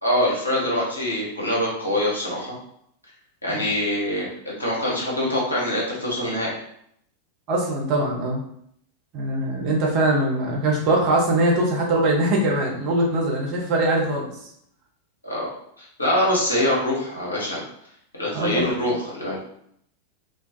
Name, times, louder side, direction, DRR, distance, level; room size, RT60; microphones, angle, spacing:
voice 1, 0.0-2.5 3.4-6.5 15.2-15.5 15.8-17.6 18.2-19.4, left 1 dB, 80° left, -5 dB, 0.8 m, -24 dB
voice 2, 7.5-8.4 9.1-14.3 18.3-18.7, right 1 dB, 40° right, -2 dB, 0.7 m, -22 dB
2.3 x 2.2 x 2.6 m, 0.70 s
figure-of-eight pair, 90°, 0 cm